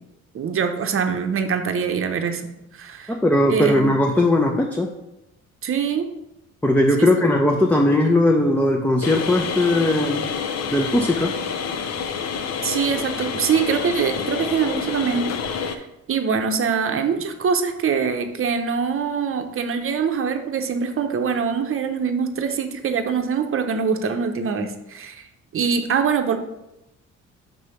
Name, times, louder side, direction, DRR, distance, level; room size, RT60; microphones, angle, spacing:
voice 1, 0.3-3.1 3.5-4.0 5.6-6.1 7.0-7.1 12.6-25.2 25.5-26.4, right 6 dB, 45° right, 6 dB, 0.8 m, -24 dB
voice 2, 3.1-4.9 6.6-10.3 10.7-11.3, left 1 dB, 5° left, 1 dB, 0.6 m, -19 dB
sound 1, 9.0-15.8, left 6 dB, 60° left, 0.6 m, -28 dB
5.3 x 3.3 x 5.6 m, 0.88 s
cardioid pair, 90°, 30 cm